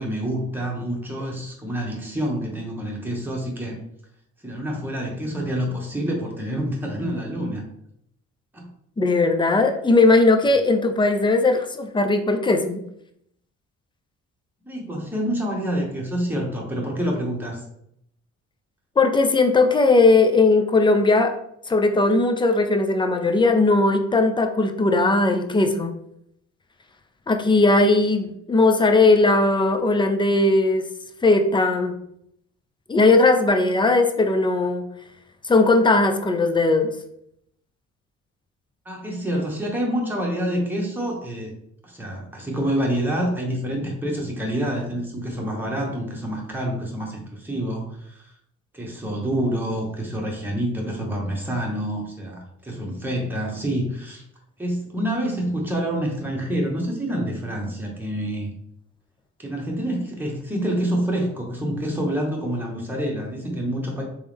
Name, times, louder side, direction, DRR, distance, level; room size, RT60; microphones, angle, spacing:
voice 1, 0.0-3.8 4.4-7.6 8.5-8.7 14.6-17.6 38.8-41.5 41.8-48.3 48.7-54.2 54.6-58.5 59.4-64.0, right 1 dB, 5° right, -1 dB, 1.2 m, -27 dB
voice 2, 9.0-12.8 19.0-21.4 21.7-25.9 27.3-30.8 31.2-32.0 32.9-34.8 35.4-36.9, left 3 dB, 15° left, 6 dB, 0.5 m, -18 dB
3.5 x 3.1 x 3.4 m, 0.73 s
cardioid pair, 90°, 30 cm